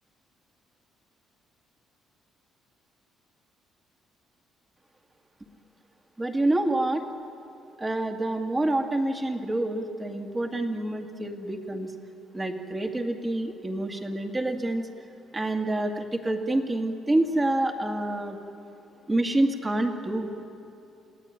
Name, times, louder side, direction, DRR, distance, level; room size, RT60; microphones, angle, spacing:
voice 1, 6.2-7.0 7.8-11.9 12.3-14.9 15.3-18.4 19.1-20.3, right 1 dB, 15° right, 4 dB, 2.1 m, -27 dB
29.0 x 17.5 x 10.0 m, 2.8 s
cardioid pair, 130°, 0 cm